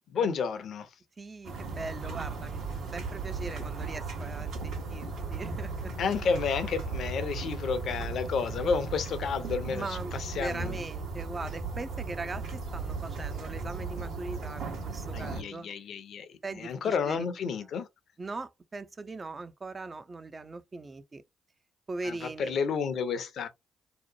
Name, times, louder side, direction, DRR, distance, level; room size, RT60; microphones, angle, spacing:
voice 1, 0.1-0.9 6.0-10.8 15.1-16.3 16.5-17.9 22.0-23.5, left 6 dB, 60° left, 0.6 m, -31 dB
voice 2, 1.2-2.6 2.9-5.1 5.3-5.9 9.7-15.7 16.4-17.2 18.2-21.2 21.9-22.6, right 3 dB, 35° right, 0.4 m, -40 dB
sound 1, 1.4-15.4, right 4 dB, 65° right, 1.0 m, -36 dB
2.8 x 2.1 x 2.6 m
hypercardioid pair, 45°, 0 cm